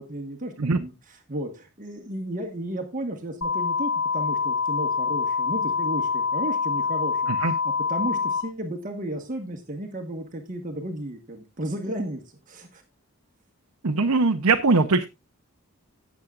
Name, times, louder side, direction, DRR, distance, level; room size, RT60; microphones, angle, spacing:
voice 1, 0.0-7.3 7.6-12.8, right 1 dB, 35° right, 3 dB, 1.3 m, -34 dB
sound 1, 3.4-8.4, left 5 dB, 60° left, 6.8 m, -25 dB
voice 2, 13.8-15.1, right 3 dB, 80° right, 4 dB, 0.8 m, -21 dB
18.0 x 7.3 x 2.5 m, 0.25 s
head